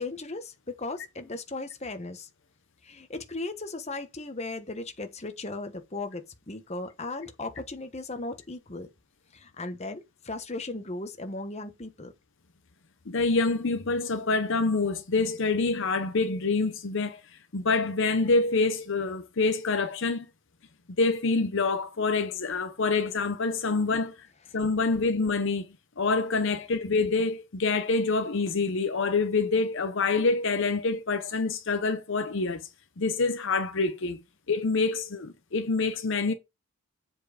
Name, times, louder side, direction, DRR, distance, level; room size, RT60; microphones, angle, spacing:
voice 1, 0.0-2.3 2.8-8.9 9.3-12.1, left 2 dB, 30° left, 1.1 m, -37 dB
voice 2, 13.1-20.3 21.0-24.2 24.5-25.7 26.0-32.6 33.0-34.2 34.5-36.3, left 3 dB, 55° left, 0.7 m, -26 dB
7.7 x 4.5 x 5.0 m
head